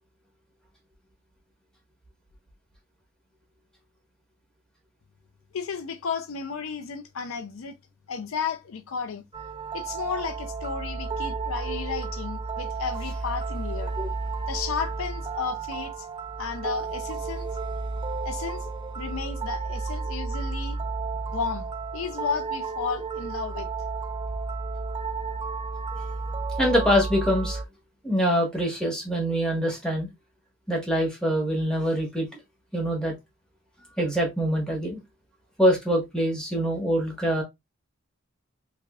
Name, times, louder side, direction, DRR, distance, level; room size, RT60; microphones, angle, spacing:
voice 1, 5.5-7.8 8.1-9.2 9.7-13.9 14.5-16.1 16.4-17.5 18.2-20.8 21.3-21.7 21.9-23.7, left 6 dB, 75° left, 0.5 m, -33 dB
sound 1, 9.3-27.6, right 4 dB, 20° right, 0.3 m, -32 dB
voice 2, 26.6-27.6 28.0-30.1 30.7-32.3 32.7-33.1 34.0-35.0 35.6-37.4, equal, 5° left, 1.3 m, -24 dB
3.5 x 3.3 x 2.3 m
head